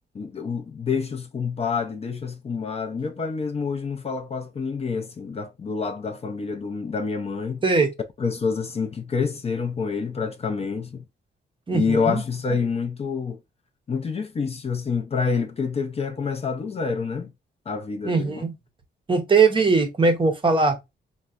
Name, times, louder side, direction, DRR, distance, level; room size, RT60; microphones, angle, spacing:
voice 1, 0.2-7.6 8.2-11.0 11.7-13.4 13.9-17.3 17.7-18.4, left 5 dB, 35° left, 0.4 m, -27 dB
voice 2, 11.7-12.2 18.0-18.5 19.1-20.8, right 4 dB, 25° right, 0.6 m, -20 dB
4.4 x 2.1 x 2.3 m
cardioid pair, 120°, 19 cm